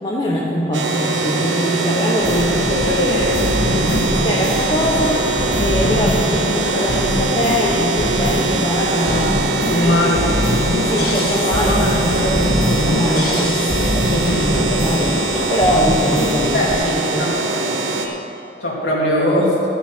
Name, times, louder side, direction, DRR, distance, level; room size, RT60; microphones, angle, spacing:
voice 1, 0.0-3.4 3.7-5.2 5.6-10.1 10.8-15.2 15.5-17.4, equal, 25° left, -5 dB, 1.3 m, -22 dB
sound 1, 0.7-18.1, right 3 dB, 90° right, 1.2 m, -22 dB
sound 2, 2.2-16.7, left 1 dB, 60° left, 2.1 m, -22 dB
voice 2, 2.9-3.3 9.7-10.3 11.5-12.0 14.3-14.5 16.5-17.6 18.6-19.6, left 1 dB, 75° left, -5 dB, 2.6 m, -21 dB
13.0 x 7.2 x 6.3 m, 2.6 s
head